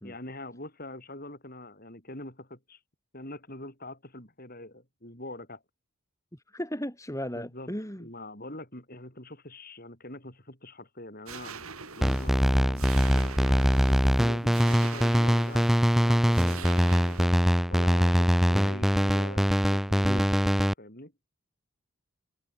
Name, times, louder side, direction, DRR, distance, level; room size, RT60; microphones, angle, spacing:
voice 1, 0.0-2.8 3.1-5.6 7.3-7.7 8.0-17.3 17.7-21.1, left 1 dB, 40° left, 7.4 m, -44 dB
voice 2, 6.5-8.1 12.0-12.2 20.0-20.3, equal, 15° left, 3.7 m, -35 dB
sound 1, 11.3-17.3, right 5 dB, 75° right, 4.8 m, -44 dB
sound 2, 12.0-20.7, equal, ahead, 2.6 m, -23 dB
head